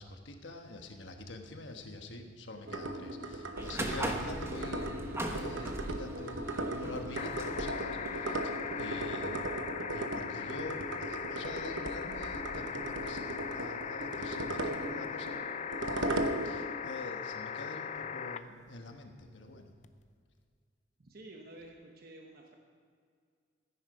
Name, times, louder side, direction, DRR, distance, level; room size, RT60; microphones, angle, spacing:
voice 1, 0.0-5.0 5.3-9.4 9.9-19.7, left 2 dB, 70° left, 5 dB, 1.3 m, -46 dB
sound 1, 2.7-16.7, right 1 dB, 90° right, 1.0 m, -38 dB
sound 2, 3.6-9.4, right 1 dB, 15° right, 1.1 m, -40 dB
sound 3, 7.1-18.4 19.8-19.9, left 7 dB, 40° left, 0.5 m, -39 dB
voice 2, 21.0-22.6, right 1 dB, 55° right, 1 dB, 1.1 m, -51 dB
14.5 x 9.9 x 5.2 m, 2.1 s
head